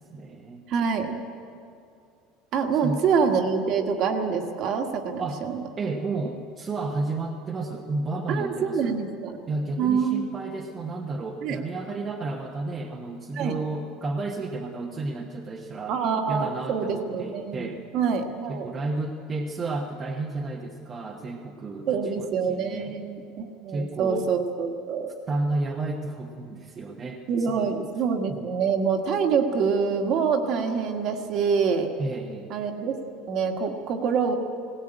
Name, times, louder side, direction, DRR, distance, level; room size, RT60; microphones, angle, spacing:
voice 1, 0.1-0.6 2.8-3.0 5.2-5.4 5.8-8.9 9.5-16.0 16.3-17.8 18.5-22.9 23.7-24.3 25.3-27.7 28.3-28.5 32.0-32.5, right 2 dB, 20° right, 1 dB, 1.1 m, -32 dB
voice 2, 0.7-1.1 2.5-5.6 8.3-9.4 9.8-10.3 11.4-11.6 13.4-13.6 15.9-18.7 21.9-25.1 27.3-31.9 32.5-33.0 33.3-34.4, right 6 dB, 40° right, 5 dB, 1.7 m, -26 dB
18.5 x 17.5 x 9.0 m, 2.5 s
cardioid pair, 165°, 0 cm